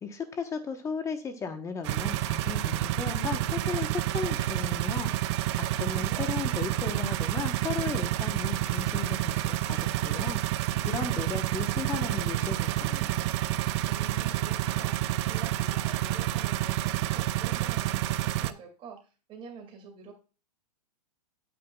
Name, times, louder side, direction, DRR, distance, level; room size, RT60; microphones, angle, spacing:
voice 1, 0.0-5.1 5.5-10.4 10.8-13.2, left 5 dB, 15° left, 8 dB, 1.0 m, -35 dB
sound 1, 1.8-18.5, right 14 dB, 45° right, 0.4 m, -29 dB
voice 2, 5.8-6.2 11.3-11.4 13.9-20.1, right 5 dB, 25° right, 4 dB, 2.3 m, -47 dB
8.8 x 7.9 x 2.3 m, 0.34 s
hypercardioid pair, 145°, 21 cm